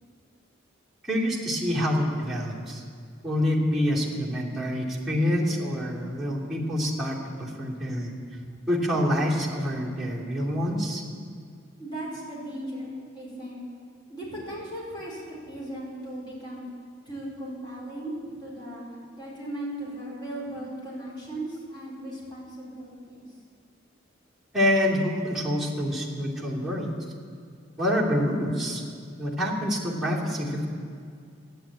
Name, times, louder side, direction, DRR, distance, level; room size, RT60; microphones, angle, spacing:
voice 1, 1.0-2.8 3.2-8.1 8.7-11.0 24.5-26.9 27.8-28.8 29.2-30.7, equal, ahead, -7 dB, 2.8 m, -26 dB
voice 2, 11.8-13.6 14.1-16.6 17.0-18.8 19.1-23.2, right 1 dB, 25° left, -7 dB, 4.8 m, -37 dB
13.0 x 10.5 x 8.9 m, 2.2 s
head